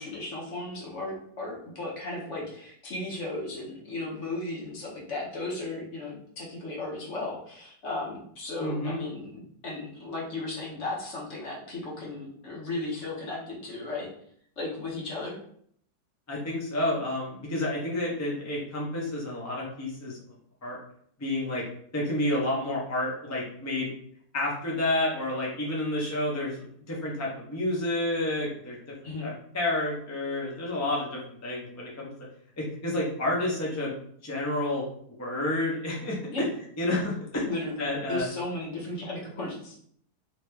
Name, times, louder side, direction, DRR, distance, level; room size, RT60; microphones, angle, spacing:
voice 1, 0.0-14.1 14.6-15.4 29.0-29.3 36.3-36.5 37.5-39.8, left 2 dB, 55° left, -3 dB, 1.1 m, -35 dB
voice 2, 8.6-9.0 16.3-20.2 20.6-20.8 21.2-21.6 21.9-23.9 24.3-28.8 29.2-32.1 32.6-33.9 34.2-34.8 35.2-36.2 36.8-37.4 37.8-38.3, left 1 dB, 20° left, -4 dB, 0.5 m, -30 dB
3.0 x 2.9 x 3.3 m, 0.64 s
omnidirectional pair, 1.7 m